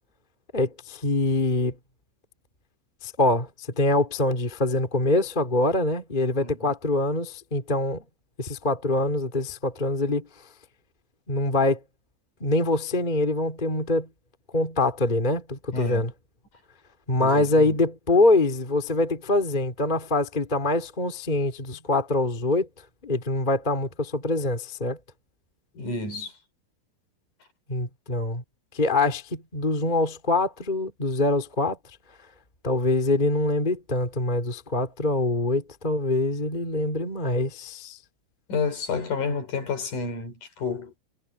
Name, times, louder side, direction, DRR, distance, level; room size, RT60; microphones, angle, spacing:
voice 1, 0.5-1.8 3.0-8.0 8.4-10.3 11.3-11.8 12.4-14.1 14.5-16.1 17.1-22.7 23.0-25.0 27.7-28.4 28.7-31.8 32.6-38.0, left 2 dB, 15° left, 2.1 m, -24 dB
voice 2, 6.4-6.7 15.7-16.0 17.2-17.7 25.7-26.3 38.5-40.9, left 5 dB, 45° left, 4.9 m, -30 dB
omnidirectional pair, 5.6 m